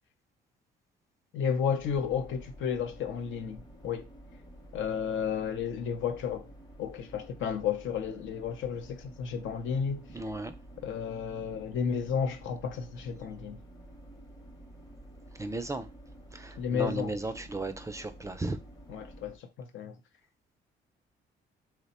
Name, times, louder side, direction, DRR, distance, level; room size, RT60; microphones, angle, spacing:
voice 1, 1.3-4.0 4.7-6.5 6.8-10.0 10.8-13.6 16.6-17.2 18.9-20.0, left 7 dB, 75° left, 0.6 m, -32 dB
sound 1, 1.8-19.4, right 1 dB, 20° left, 0.8 m, -51 dB
voice 2, 10.1-10.5 15.4-15.9 16.3-18.6, right 2 dB, 15° right, 0.4 m, -35 dB
2.9 x 2.1 x 4.1 m
cardioid pair, 90°, 20 cm